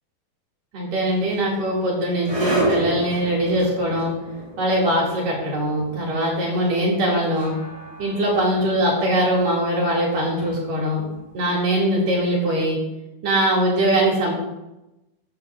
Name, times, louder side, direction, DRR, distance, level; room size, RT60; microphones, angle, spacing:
voice 1, 0.7-4.1 4.6-7.5 8.0-12.8 13.2-14.3, right 1 dB, 75° right, -4 dB, 6.0 m, -21 dB
sound 1, 1.1-12.2, right 1 dB, 10° right, 4.6 m, -32 dB
15.0 x 12.0 x 3.3 m, 0.96 s
omnidirectional pair, 3.8 m